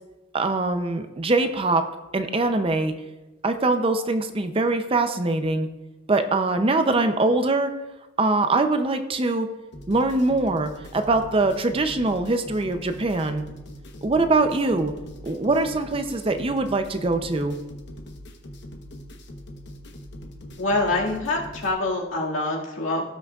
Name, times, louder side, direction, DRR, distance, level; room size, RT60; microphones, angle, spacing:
voice 1, 0.3-2.9 3.4-5.7 6.1-7.7 8.2-9.5 9.9-13.4 14.0-14.9 15.2-17.6, right 2 dB, 25° right, 7 dB, 0.5 m, -23 dB
sound 1, 9.7-21.7, equal, 60° left, 1.1 m, -42 dB
voice 2, 20.6-23.1, left 2 dB, 80° left, -3 dB, 2.1 m, -25 dB
17.5 x 6.1 x 2.4 m, 1.1 s
head